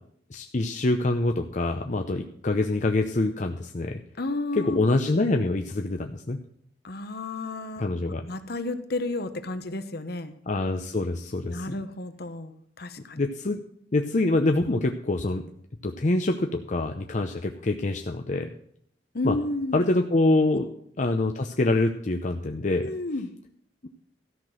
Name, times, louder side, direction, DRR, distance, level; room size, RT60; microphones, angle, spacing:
voice 1, 0.3-4.0 4.5-6.4 7.8-8.3 10.5-11.7 13.2-13.6 13.9-15.5 15.8-18.5 19.2-19.4 19.7-20.7 21.0-22.9 23.8-23.9, left 2 dB, 45° left, 5 dB, 0.7 m, -25 dB
voice 2, 4.2-4.8 6.8-7.8 8.3-10.3 11.4-13.2 19.1-19.8 22.8-23.3, left 2 dB, 60° left, 10 dB, 1.1 m, -32 dB
13.5 x 6.0 x 7.5 m, 0.65 s
head